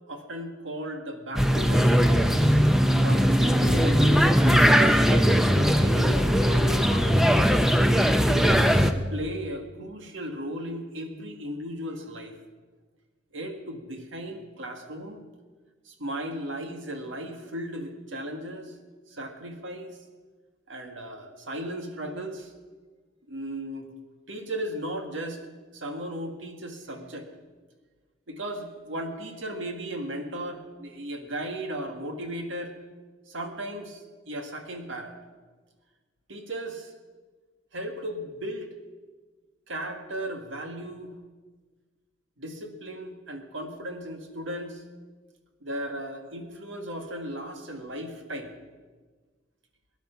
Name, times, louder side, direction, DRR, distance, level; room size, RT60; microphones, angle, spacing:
voice 1, 0.1-2.6 3.0-4.4 4.7-7.3 8.3-12.3 13.3-15.2 15.9-18.7 19.1-20.0 20.7-22.5 23.3-23.9 24.3-25.4 25.7-27.3 28.3-32.8 33.3-35.1 36.3-36.9 37.7-38.7 39.7-41.2 42.4-44.8 45.6-48.5, right 1 dB, 80° right, 5 dB, 1.9 m, -36 dB
sound 1, 1.4-8.9, equal, ahead, 0.7 m, -20 dB
19.5 x 10.5 x 5.8 m, 1.4 s
head